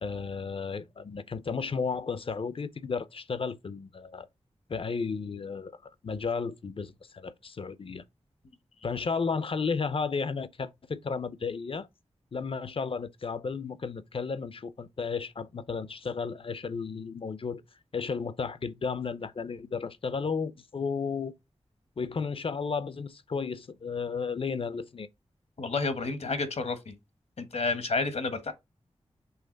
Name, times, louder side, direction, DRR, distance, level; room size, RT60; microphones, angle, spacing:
voice 1, 0.0-4.3 4.7-8.0 8.8-11.9 12.3-17.6 17.9-21.3 22.0-25.1, left 5 dB, 55° left, 0.6 m, -33 dB
voice 2, 25.6-27.0 27.4-28.5, left 3 dB, 75° left, 1.1 m, -30 dB
5.7 x 3.3 x 5.1 m
wide cardioid pair, 85°, 11 cm